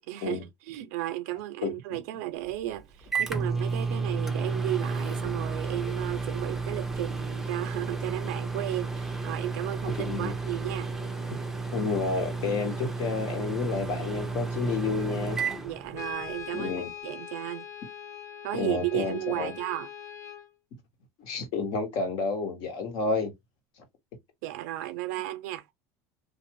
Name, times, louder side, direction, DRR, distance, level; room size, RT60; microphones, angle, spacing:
voice 1, 0.1-10.9 15.6-16.7 17.0-17.7 18.4-19.9 24.4-25.7, right 15 dB, 80° right, 0.4 m, -34 dB
Microwave oven, 2.4-16.5, right 4 dB, 5° right, 0.5 m, -32 dB
voice 2, 9.9-10.3 11.7-15.4 16.5-16.9 18.5-19.5 21.2-23.3, left 4 dB, 60° left, 1.3 m, -30 dB
Brass instrument, 15.9-20.5, left 9 dB, 40° left, 0.5 m, -42 dB
2.5 x 2.4 x 2.9 m
supercardioid pair, 110°, 8 cm